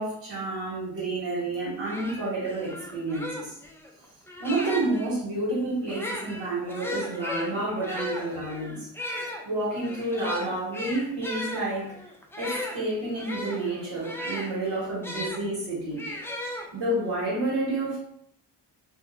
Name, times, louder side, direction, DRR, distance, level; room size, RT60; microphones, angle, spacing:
voice 1, 0.0-3.5 4.4-8.9 9.4-11.9 12.4-16.0 16.7-18.0, right 2 dB, 80° right, -9 dB, 1.4 m, -29 dB
sound 1, 1.5-1.6 1.8-5.1 5.8-15.4 16.0-17.1, left 1 dB, 5° left, 0.4 m, -36 dB
2.8 x 2.1 x 3.5 m, 0.69 s
cardioid pair, 105°, 42 cm